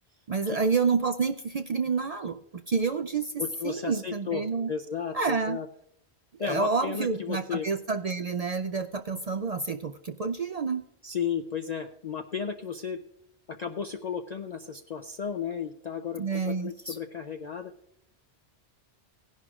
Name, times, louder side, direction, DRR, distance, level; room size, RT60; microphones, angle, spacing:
voice 1, 0.3-2.4 2.7-4.7 5.1-5.6 6.4-10.8 16.1-17.0, right 4 dB, 55° right, 7 dB, 0.4 m, -29 dB
voice 2, 3.4-5.7 6.4-7.7 11.0-13.0 13.5-17.7, left 7 dB, 50° left, 7 dB, 0.6 m, -34 dB
17.0 x 11.0 x 2.4 m, 0.78 s
omnidirectional pair, 1.1 m